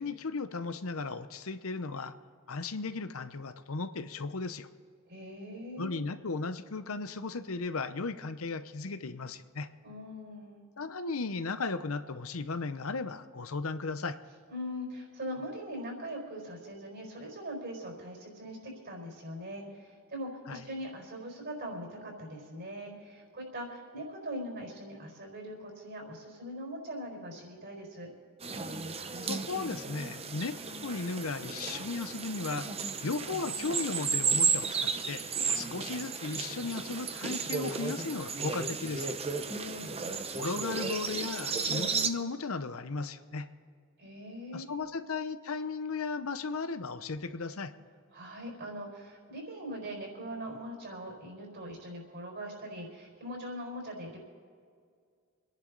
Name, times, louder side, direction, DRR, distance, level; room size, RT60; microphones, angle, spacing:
voice 1, 0.0-2.1 2.5-4.7 5.8-9.7 10.8-14.2 20.5-20.6 29.2-30.6 30.8-32.7 33.0-35.2 35.5-39.1 40.4-43.5 44.5-47.7, left 4 dB, 80° left, 11 dB, 0.8 m, -36 dB
voice 2, 5.1-6.0 9.8-10.6 14.5-28.1 39.4-40.2 44.0-44.9 48.1-54.2, equal, 55° right, 1 dB, 4.6 m, -41 dB
sound 1, 28.4-42.1, right 5 dB, 30° right, 0.8 m, -33 dB
27.0 x 10.5 x 4.0 m, 2.1 s
head